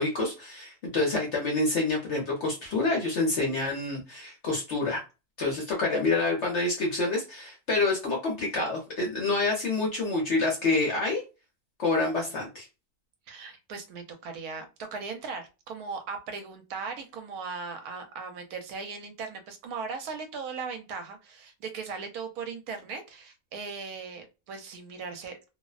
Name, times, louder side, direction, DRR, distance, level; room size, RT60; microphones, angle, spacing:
voice 1, 0.0-5.0 5.4-11.2 11.8-12.7, left 3 dB, 60° left, -1 dB, 0.9 m, -27 dB
voice 2, 13.3-25.5, right 5 dB, 80° right, 6 dB, 1.1 m, -38 dB
2.6 x 2.0 x 2.3 m, 0.28 s
omnidirectional pair, 1.6 m